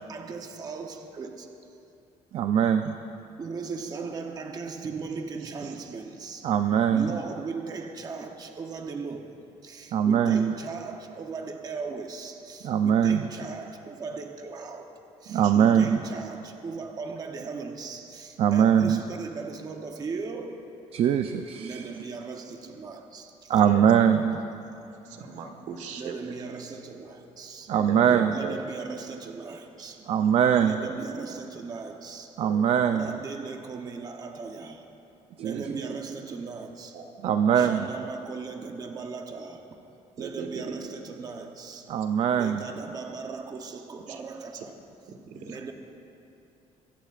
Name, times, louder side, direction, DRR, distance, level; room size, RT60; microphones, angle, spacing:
voice 1, 0.0-1.8 3.4-6.5 6.9-14.9 15.2-20.6 21.6-23.5 26.0-27.7 28.3-30.0 30.6-32.3 32.8-34.9 35.4-37.0 37.5-39.6 40.2-41.9 42.3-44.7 45.5-45.7, right 4 dB, 30° right, 4 dB, 0.8 m, -38 dB
voice 2, 2.3-3.0 6.4-7.1 9.9-10.5 12.6-13.3 15.3-16.0 18.4-19.0 20.9-21.8 23.5-24.4 27.7-28.5 30.1-30.9 32.4-33.2 35.4-35.6 37.2-37.9 41.9-42.7, right 8 dB, 50° right, 8 dB, 0.5 m, -22 dB
voice 3, 25.1-26.1 27.7-28.5 30.8-30.9 32.4-32.7 35.4-36.0 36.9-37.7 40.2-40.8 44.1-44.2 45.1-45.6, right 5 dB, 75° right, 4 dB, 1.5 m, -38 dB
22.5 x 16.5 x 2.5 m, 2.8 s
cardioid pair, 160°, 13 cm